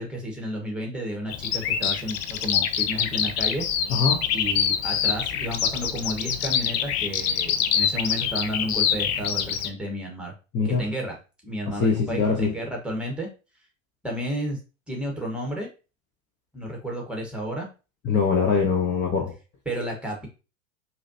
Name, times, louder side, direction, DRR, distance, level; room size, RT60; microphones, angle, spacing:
voice 1, 0.0-3.6 4.3-10.3 10.6-11.2 11.4-13.3 14.0-14.6 14.9-15.7 16.5-17.7 19.6-20.3, equal, ahead, 1 dB, 1.4 m, -32 dB
Bird vocalization bird call bird song, 1.3-9.7, left 8 dB, 50° left, 0.6 m, -25 dB
voice 2, 3.9-4.2 10.5-10.8 11.8-12.5 18.1-19.3, left 5 dB, 25° left, 1 dB, 0.9 m, -22 dB
4.9 x 2.8 x 2.7 m, 0.31 s
hypercardioid pair, 95°, 40 cm